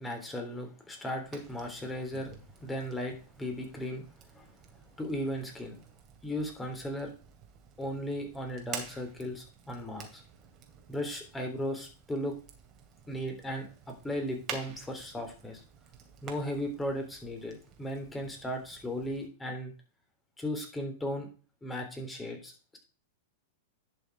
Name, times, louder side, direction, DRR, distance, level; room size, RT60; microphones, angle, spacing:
voice 1, 0.0-4.1 4.3-4.6 5.0-5.8 6.2-7.1 7.8-10.2 10.9-12.4 13.1-15.6 16.2-19.7 20.4-21.3 21.6-22.8, left 1 dB, 10° left, 2 dB, 3.6 m, -36 dB
Fire, 1.2-19.3, right 7 dB, 35° right, 2.6 m, -50 dB
11.0 x 6.1 x 4.7 m, 0.36 s
hypercardioid pair, 105°, 0 cm